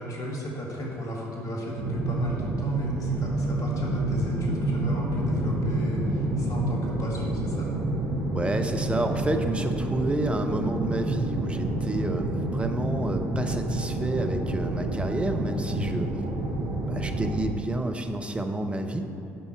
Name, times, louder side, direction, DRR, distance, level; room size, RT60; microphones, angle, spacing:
voice 1, 0.0-7.7, right 1 dB, 50° left, -3 dB, 2.1 m, -34 dB
sound 1, 1.8-17.4, right 1 dB, 55° right, 1.3 m, -28 dB
voice 2, 8.3-16.1 16.9-19.1, right 1 dB, 15° right, 5 dB, 0.8 m, -29 dB
9.4 x 5.7 x 4.6 m, 2.8 s
figure-of-eight pair, 50°, 8 cm